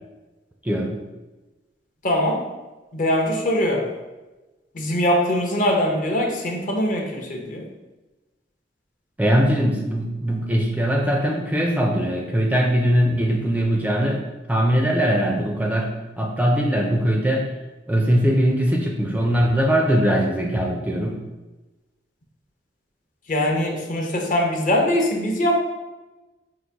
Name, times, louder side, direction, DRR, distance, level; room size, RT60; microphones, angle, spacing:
voice 1, 0.6-1.0 9.2-14.2 14.5-15.9 16.2-17.5 17.9-21.2, equal, 10° right, 1 dB, 0.4 m, -21 dB
voice 2, 2.0-2.4 2.9-3.9 4.7-7.7 23.3-25.6, left 1 dB, 45° left, 2 dB, 0.7 m, -22 dB
3.9 x 2.4 x 4.5 m, 1.1 s
head